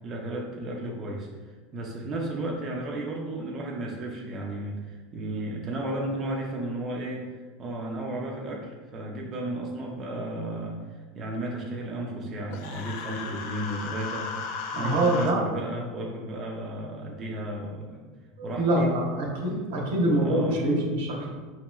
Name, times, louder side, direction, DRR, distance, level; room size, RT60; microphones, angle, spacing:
voice 1, 0.0-18.1 18.4-18.9 20.0-20.9, right 1 dB, 25° right, -1 dB, 0.4 m, -34 dB
Human voice, 12.5-15.3, left 5 dB, 60° left, 0.5 m, -35 dB
voice 2, 14.7-15.4 18.4-21.3, right 1 dB, 80° right, -1 dB, 0.9 m, -25 dB
4.6 x 2.9 x 2.3 m, 1.4 s
supercardioid pair, 160°, 0 cm